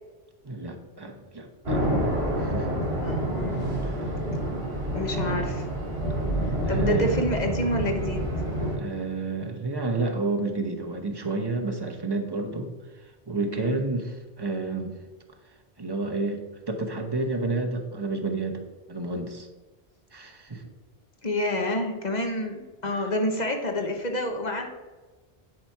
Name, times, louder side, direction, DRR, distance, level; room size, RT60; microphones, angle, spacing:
voice 1, 0.4-1.9 2.4-2.7 3.8-4.1 5.1-5.2 6.6-7.1 8.8-12.7 13.0-14.9 15.8-18.6 18.9-19.5 20.1-20.6 22.9-23.1, right 3 dB, 25° right, 3 dB, 0.9 m, -30 dB
sound 1, 1.7-8.8, right 1 dB, 75° right, 2.6 m, -28 dB
voice 2, 3.0-3.9 4.9-5.7 6.4-8.3 13.5-13.8 21.2-24.7, left 1 dB, 45° left, 4 dB, 1.1 m, -28 dB
10.5 x 4.3 x 4.6 m, 1.3 s
omnidirectional pair, 1.1 m